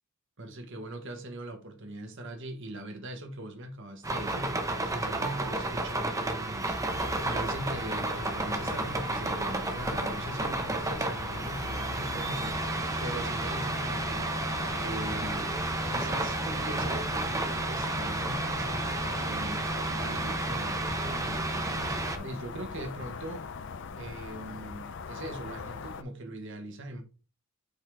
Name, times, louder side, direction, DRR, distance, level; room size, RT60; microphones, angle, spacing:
voice 1, 0.4-6.8 7.3-15.5 15.8-18.8 19.2-23.5 24.0-27.0, right 1 dB, 60° right, 1.3 m, -41 dB
sound 1, 4.0-22.2, right 2 dB, 15° right, 0.7 m, -31 dB
sound 2, 6.9-26.0, left 5 dB, 60° left, 0.6 m, -41 dB
8.0 x 3.8 x 3.4 m
head